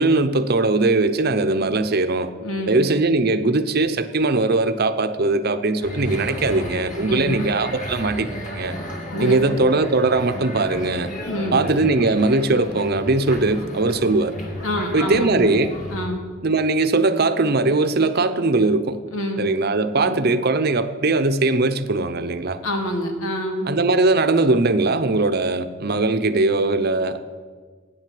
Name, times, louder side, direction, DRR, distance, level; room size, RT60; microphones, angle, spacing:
voice 1, 0.0-2.3 2.7-8.7 9.2-11.1 11.5-14.3 14.9-15.7 16.4-19.0 19.4-22.6 23.7-27.2, right 2 dB, 50° right, 9 dB, 0.8 m, -20 dB
voice 2, 2.4-2.8 7.1-7.4 9.1-9.6 11.3-11.6 14.6-16.2 19.1-19.5 19.9-20.2 22.6-23.7, left 1 dB, 90° left, 3 dB, 2.5 m, -27 dB
sound 1, 5.8-16.1, equal, 40° left, 2.3 m, -33 dB
13.5 x 9.8 x 7.7 m, 1.5 s
head